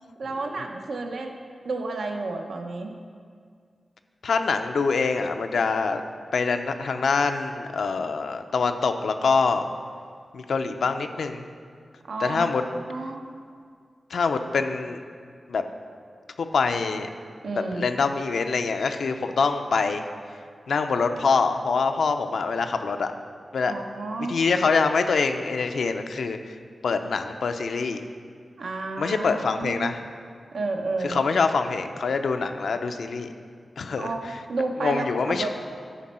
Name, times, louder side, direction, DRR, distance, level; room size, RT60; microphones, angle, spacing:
voice 1, 0.2-1.3 1.6-2.9 12.1-13.2 17.4-17.9 23.7-24.4 28.6-30.0 30.5-31.2 34.0-35.5, right 3 dB, 85° right, 3 dB, 0.8 m, -31 dB
voice 2, 4.2-6.0 6.3-9.7 10.3-11.4 12.2-12.6 14.1-15.0 15.5-15.6 16.4-17.1 17.7-20.0 20.7-23.1 23.5-23.7 24.3-26.4 26.8-28.0 29.0-30.0 31.0-33.3 33.8-34.1 34.8-35.5, left 4 dB, 90° left, 7 dB, 0.5 m, -25 dB
11.5 x 5.3 x 4.3 m, 2.1 s
wide cardioid pair, 115°, 0 cm